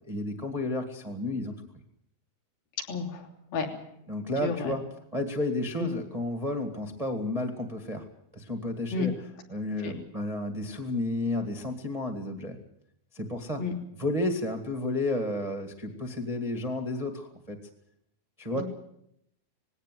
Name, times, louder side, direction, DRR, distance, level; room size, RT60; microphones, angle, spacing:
voice 1, 0.1-1.5 4.1-4.8 5.1-8.0 8.3-9.1 9.5-12.6 13.1-13.6 14.0-17.6 18.4-18.6, left 2 dB, 75° right, 3 dB, 0.3 m, -31 dB
voice 2, 2.9-3.7 4.4-4.7 5.8-5.9 8.9-9.1 9.8-9.9 13.6-13.7 18.5-18.6, left 4 dB, 65° left, 2 dB, 4.7 m, -31 dB
19.5 x 17.0 x 9.3 m, 0.76 s
omnidirectional pair, 4.5 m